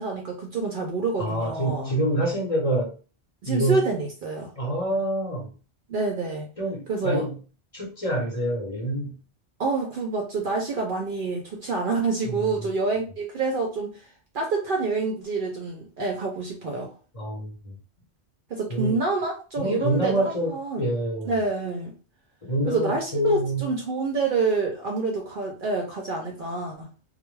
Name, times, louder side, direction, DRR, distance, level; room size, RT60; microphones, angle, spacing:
voice 1, 0.0-1.9 3.4-4.5 5.9-6.5 6.9-7.3 9.6-14.1 14.3-16.9 18.5-20.9 21.3-21.9 22.7-26.9, right 3 dB, 60° right, 1 dB, 0.6 m, -27 dB
voice 2, 1.2-2.9 3.5-3.8 4.6-5.5 6.6-7.3 7.7-9.2 12.3-12.5 17.1-17.7 18.7-19.0 19.6-21.3 22.4-23.7, right 1 dB, 35° left, -3 dB, 0.8 m, -26 dB
2.2 x 2.0 x 3.1 m, 0.35 s
omnidirectional pair, 1.2 m